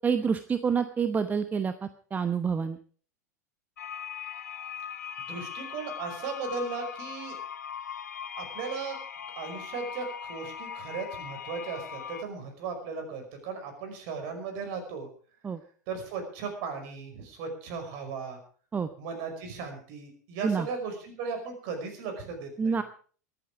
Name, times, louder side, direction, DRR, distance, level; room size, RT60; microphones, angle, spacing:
voice 1, 0.0-1.7 2.1-2.8 15.4-15.6 18.7-18.9 20.4-20.7 22.6-22.8, right 6 dB, 20° right, 11 dB, 0.9 m, -27 dB
sound 1, 3.8-12.2, left 8 dB, 70° left, 1.1 m, -40 dB
voice 2, 5.3-7.4 8.4-9.0 9.4-15.1 15.9-18.4 19.0-22.8, right 5 dB, 45° right, 5 dB, 5.3 m, -36 dB
23.5 x 9.0 x 4.9 m, 0.43 s
figure-of-eight pair, 85°, 9 cm